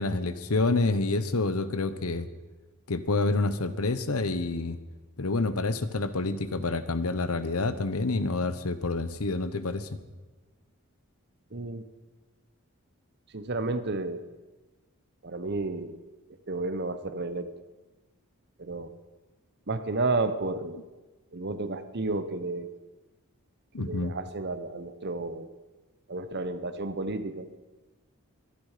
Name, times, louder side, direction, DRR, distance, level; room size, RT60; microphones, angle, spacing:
voice 1, 0.0-2.3 2.9-4.8 5.2-10.0 23.7-24.1, left 3 dB, 85° left, 13 dB, 1.0 m, -28 dB
voice 2, 11.5-11.9 13.3-14.3 15.2-16.0 16.5-17.6 18.6-18.9 19.7-20.9 21.3-22.7 23.8-25.5 26.1-27.5, right 2 dB, 50° right, 11 dB, 1.0 m, -32 dB
23.0 x 10.5 x 5.0 m, 1.2 s
head